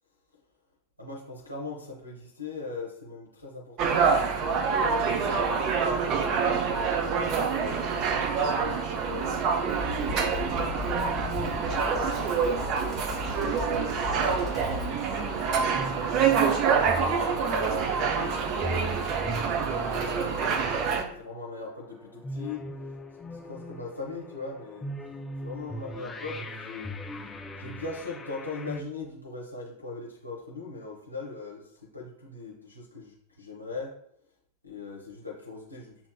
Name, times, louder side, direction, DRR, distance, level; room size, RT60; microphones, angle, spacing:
voice 1, 1.0-4.1 4.7-13.0 13.4-15.9 16.7-20.2 21.1-22.6 23.3-24.9 25.4-26.9 27.6-33.9 34.6-36.1, left 3 dB, 85° left, 0 dB, 0.8 m, -41 dB
sound 1, 3.8-21.0, right 6 dB, 40° right, 0.5 m, -26 dB
Drum kit, 9.7-14.9, left 4 dB, 10° right, 1.3 m, -38 dB
sound 2, 10.4-28.8, left 1 dB, 10° left, 0.4 m, -41 dB
7.0 x 3.0 x 2.3 m, 0.67 s
figure-of-eight pair, 90°, 0 cm